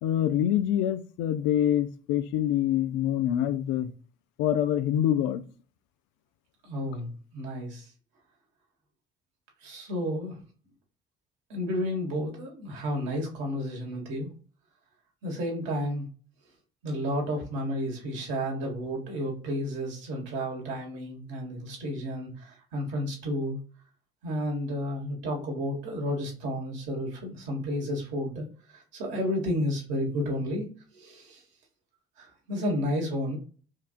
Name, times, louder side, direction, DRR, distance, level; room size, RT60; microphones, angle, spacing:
voice 1, 0.0-3.9 4.4-5.4, left 11 dB, 75° left, 12 dB, 0.5 m, -25 dB
voice 2, 6.6-7.9 9.6-10.4 11.5-14.3 15.2-16.1 16.8-23.6 24.2-28.5 28.9-30.7 30.9-31.4 32.2-33.4, equal, 70° right, 0 dB, 1.6 m, -31 dB
4.6 x 2.6 x 2.4 m, 0.39 s
hypercardioid pair, 65°, 20 cm